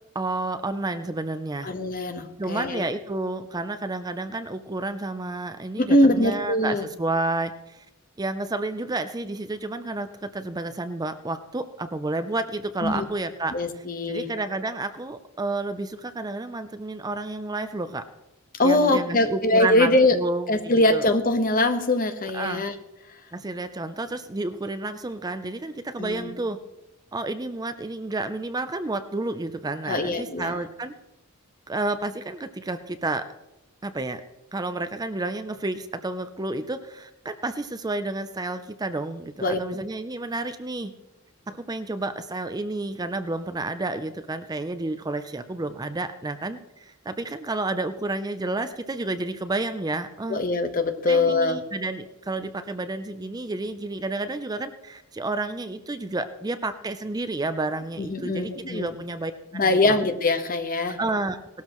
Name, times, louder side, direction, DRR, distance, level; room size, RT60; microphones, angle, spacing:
voice 1, 0.1-1.7 2.4-7.8 8.2-13.6 14.1-18.0 18.6-21.0 22.3-22.7 23.3-26.6 27.1-30.9 31.7-33.3 33.8-34.2 34.5-40.9 41.5-50.4 51.1-60.0 61.0-61.4, right 2 dB, 20° right, 10 dB, 0.5 m, -30 dB
voice 2, 1.6-2.9 5.8-6.8 12.8-13.0 13.5-14.3 18.6-20.2 20.5-22.7 26.0-26.3 29.9-30.6 39.4-39.6 50.3-51.6 58.0-58.9 59.5-61.0, left 2 dB, 40° left, 7 dB, 1.1 m, -22 dB
18.0 x 13.0 x 3.1 m, 0.94 s
head